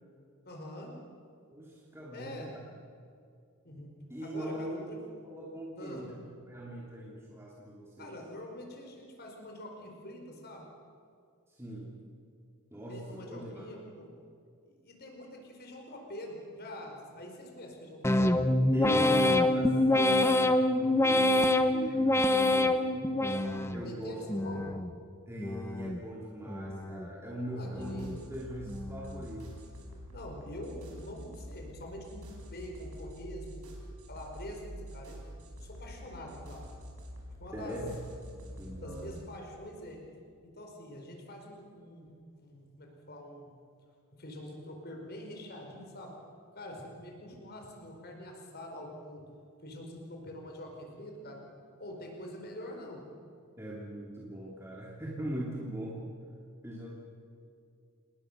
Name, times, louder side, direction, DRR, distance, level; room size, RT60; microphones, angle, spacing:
voice 1, 0.4-0.9 2.1-2.5 3.6-3.9 4.2-5.0 5.8-6.1 8.0-10.7 12.9-14.1 14.7-19.5 23.8-24.6 27.5-28.1 30.1-33.6 34.1-35.2 35.6-36.7 37.4-37.8 38.8-40.0 40.4-42.1 42.4-43.5 44.1-46.1 46.5-49.2 49.6-51.4 51.8-53.0, left 1 dB, 45° left, 1 dB, 5.0 m, -45 dB
voice 2, 1.5-2.6 4.1-4.9 5.2-8.2 11.5-12.0 12.7-13.6 18.7-23.0 23.7-24.2 25.3-29.5 37.5-37.9 38.4-39.2 53.6-56.0 56.6-56.9, right 1 dB, 10° right, -4 dB, 3.1 m, -40 dB
sound 1, 18.0-23.9 24.3-24.9 25.4-26.0 26.5-27.1 27.6-28.2 28.7-29.2, left 1 dB, 10° left, 1.0 m, -26 dB
sound 2, 27.7-39.2, equal, 80° right, 5.9 m, -46 dB
28.5 x 20.0 x 6.8 m, 2.3 s
head